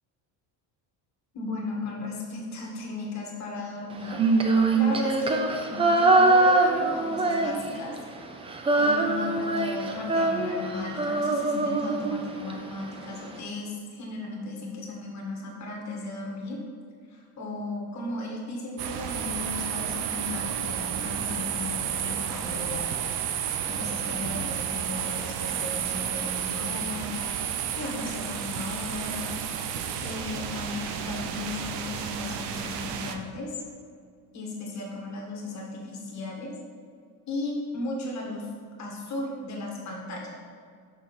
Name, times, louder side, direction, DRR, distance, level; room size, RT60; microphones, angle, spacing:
voice 1, 1.3-4.2 4.7-5.4 5.7-7.9 8.8-16.6 17.1-22.9 23.6-27.3 27.7-29.3 30.0-33.6 34.3-36.5 37.3-38.5 38.8-40.3, left 2 dB, 40° left, -1 dB, 1.6 m, -35 dB
Female singing, 4.0-8.0 8.2-12.5, right 2 dB, 15° right, 0.3 m, -23 dB
sound 1, 18.8-33.1, right 8 dB, 80° right, 0.7 m, -31 dB
6.3 x 5.7 x 4.1 m, 2.2 s
cardioid pair, 145°, 42 cm